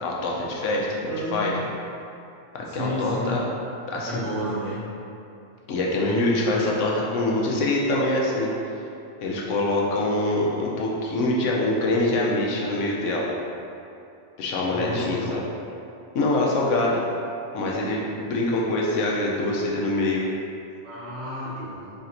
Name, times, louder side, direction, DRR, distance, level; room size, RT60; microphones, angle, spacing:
voice 1, 0.0-1.6 2.5-3.5 3.9-4.2 5.7-8.5 9.2-13.3 14.4-15.4 16.1-17.0 17.5-20.2 21.6-21.7, left 2 dB, 85° left, -3 dB, 1.0 m, -24 dB
voice 2, 1.1-1.6 2.7-3.4 4.0-4.8 14.7-15.3 20.8-21.9, equal, 65° right, -8 dB, 1.4 m, -31 dB
3.3 x 2.5 x 4.2 m, 2.8 s
omnidirectional pair, 1.2 m